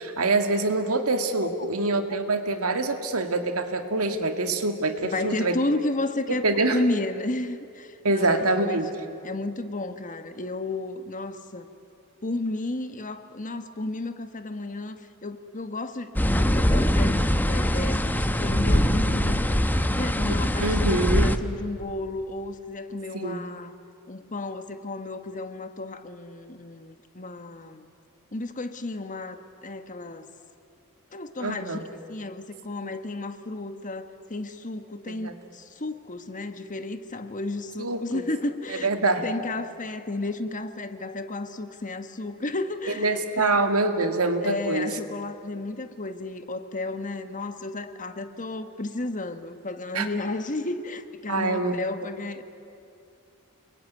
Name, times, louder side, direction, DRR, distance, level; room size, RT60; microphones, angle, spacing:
voice 1, 0.0-5.5 6.3-6.8 8.0-8.9 20.6-21.3 23.1-23.4 31.4-31.8 35.2-35.3 37.8-38.0 38.8-39.3 43.0-44.9 49.9-50.1 51.3-51.8, right 2 dB, 70° right, 7 dB, 2.2 m, -25 dB
voice 2, 5.1-8.9 9.2-11.7 12.2-19.5 19.9-23.7 24.1-27.9 28.3-30.3 31.1-43.6 44.4-52.4, left 2 dB, 35° left, 9 dB, 1.3 m, -33 dB
sound 1, 16.2-21.4, equal, 10° left, 0.9 m, -22 dB
29.5 x 21.5 x 9.4 m, 2.6 s
head